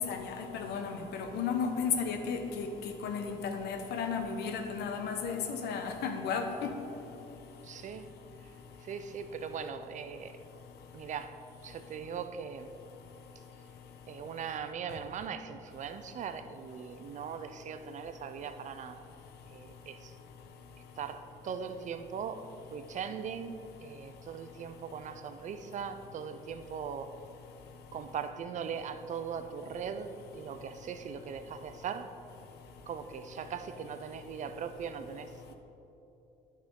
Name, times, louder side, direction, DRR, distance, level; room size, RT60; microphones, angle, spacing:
voice 1, 0.0-2.7 3.0-6.7, left 6 dB, 75° left, 5 dB, 0.9 m, -34 dB
voice 2, 7.6-8.1 8.8-10.4 10.9-12.7 14.1-19.1 19.5-20.1 21.0-27.1 27.9-32.1 32.9-35.5, right 7 dB, 45° right, 9 dB, 0.5 m, -40 dB
9.7 x 6.3 x 3.7 m, 3.0 s
cardioid pair, 110°, 17 cm